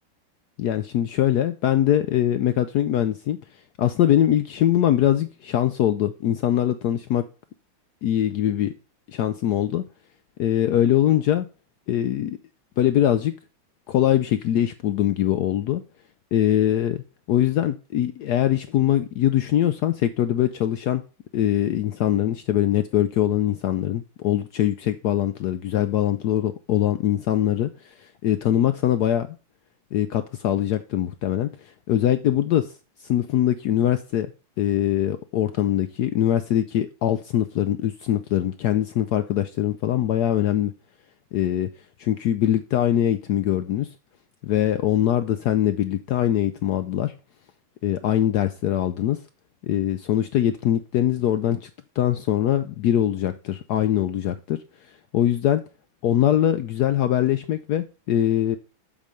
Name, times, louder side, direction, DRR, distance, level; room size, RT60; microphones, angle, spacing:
voice 1, 0.6-3.4 3.8-7.2 8.0-8.7 9.1-9.8 10.4-11.5 11.9-12.4 12.8-13.3 13.9-15.8 16.3-17.0 17.3-21.0 21.3-29.3 29.9-32.7 33.0-34.3 34.6-40.7 41.3-41.7 42.0-43.9 44.4-47.1 47.8-49.2 49.6-51.7 52.0-54.6 55.1-55.6 56.0-58.6, left 11 dB, 75° left, 0.9 m, -22 dB
7.5 x 5.0 x 5.1 m
omnidirectional pair, 2.2 m